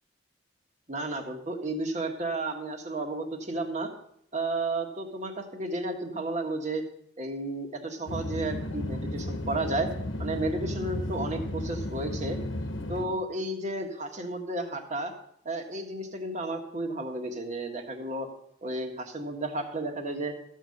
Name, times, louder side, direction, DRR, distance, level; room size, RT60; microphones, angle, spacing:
voice 1, 0.9-3.9 4.3-6.8 7.2-9.9 10.2-12.4 12.9-15.1 15.4-18.3 18.6-20.3, right 2 dB, 35° right, 4 dB, 1.6 m, -32 dB
sound 1, 8.1-13.0, left 1 dB, 85° left, 1.2 m, -34 dB
14.0 x 5.6 x 7.8 m, 0.71 s
head